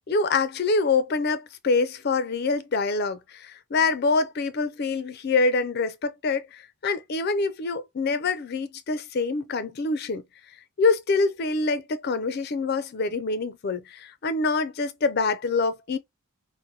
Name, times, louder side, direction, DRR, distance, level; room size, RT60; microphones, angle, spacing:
voice 1, 0.1-10.2 10.8-16.0, left 3 dB, 45° left, 0.4 m, -25 dB
3.8 x 2.1 x 2.7 m
head